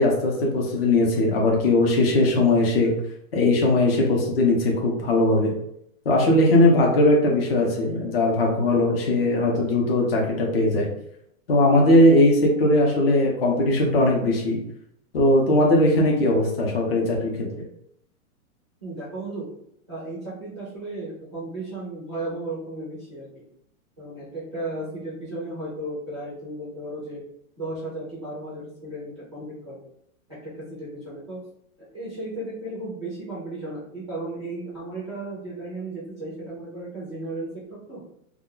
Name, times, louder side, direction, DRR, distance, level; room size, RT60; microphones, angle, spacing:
voice 1, 0.0-2.9 3.3-5.5 6.1-10.9 11.5-14.6 15.1-17.6, left 1 dB, 40° left, -1 dB, 0.6 m, -19 dB
voice 2, 18.8-19.5 19.9-23.4 24.0-27.2 27.6-29.8 30.4-30.5 30.8-31.4 31.9-38.0, right 2 dB, 20° right, -9 dB, 0.4 m, -34 dB
2.3 x 2.1 x 3.7 m, 0.73 s
hypercardioid pair, 175°, 44 cm